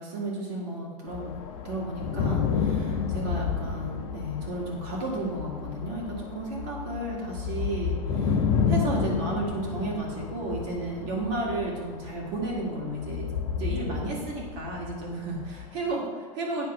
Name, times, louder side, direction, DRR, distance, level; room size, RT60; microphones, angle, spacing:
voice 1, 0.0-1.3 1.6-16.7, right 2 dB, 55° right, -3 dB, 2.1 m, -33 dB
sound 1, 1.1-15.9, left 6 dB, 75° left, 1.0 m, -31 dB
8.6 x 3.5 x 5.9 m, 1.5 s
supercardioid pair, 150°, 18 cm